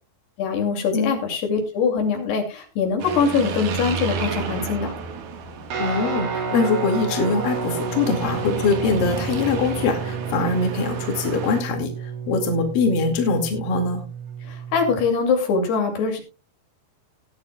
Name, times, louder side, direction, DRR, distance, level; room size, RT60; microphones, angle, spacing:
voice 1, 0.4-4.9 14.7-16.2, left 5 dB, 85° left, 3 dB, 4.6 m, -22 dB
sound 1, 3.0-11.6, right 5 dB, 60° right, 2.8 m, -32 dB
Guitar, 5.7-15.1, right 5 dB, 85° right, 5.1 m, -30 dB
voice 2, 5.8-14.1, left 4 dB, 60° left, 3 dB, 3.7 m, -23 dB
19.0 x 10.5 x 2.3 m, 0.31 s
omnidirectional pair, 4.6 m